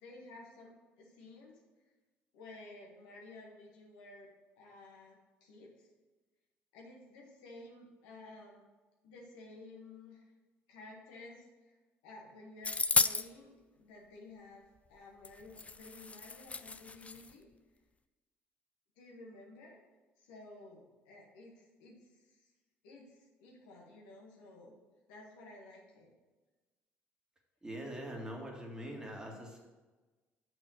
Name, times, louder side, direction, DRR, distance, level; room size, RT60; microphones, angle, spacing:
voice 1, 0.0-1.6 2.3-4.3 4.5-5.9 6.7-8.7 9.0-10.2 10.7-11.7 12.0-14.6 14.9-17.5 19.0-19.8 20.2-22.5 22.8-24.7 25.1-26.1, left 2 dB, 75° left, -1 dB, 1.6 m, -53 dB
sound 1, 12.6-13.3 15.2-15.3 15.6-17.3, left 4 dB, 20° left, 0.4 m, -32 dB
voice 2, 27.6-29.6, equal, 10° right, -1 dB, 2.0 m, -43 dB
6.6 x 4.8 x 6.3 m, 1.2 s
hypercardioid pair, 55°, 6 cm